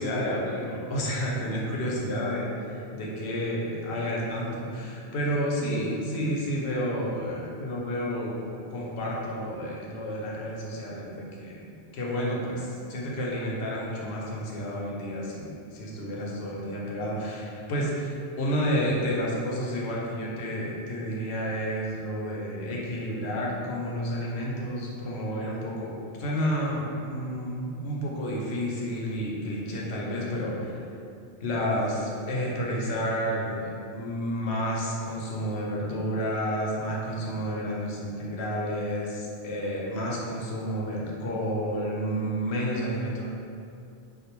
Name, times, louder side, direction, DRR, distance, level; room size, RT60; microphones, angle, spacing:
voice 1, 0.0-25.9 26.2-30.8 31.4-43.2, equal, 75° left, -3 dB, 0.8 m, -30 dB
2.3 x 2.0 x 3.0 m, 2.5 s
omnidirectional pair, 1.1 m